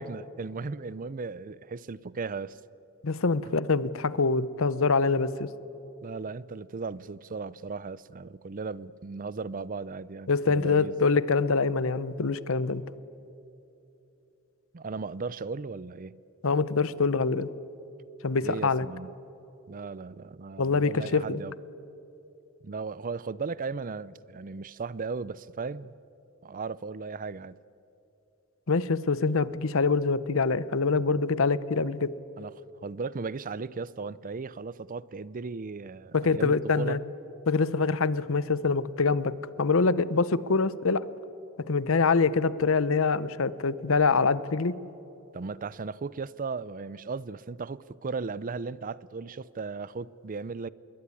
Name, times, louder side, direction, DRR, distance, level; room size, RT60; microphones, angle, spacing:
voice 1, 0.0-2.6 6.0-10.9 14.7-16.2 18.4-19.2 19.7-21.5 22.6-26.0 26.4-27.6 32.4-32.5 32.8-37.0 45.3-50.7, right 4 dB, 40° right, 0.5 m, -36 dB
voice 2, 3.0-5.5 10.3-12.8 16.4-17.5 18.2-18.9 20.6-21.4 28.7-32.1 36.1-37.0 37.5-41.1 41.7-44.8, left 4 dB, 65° left, 0.8 m, -25 dB
26.0 x 22.0 x 9.7 m
head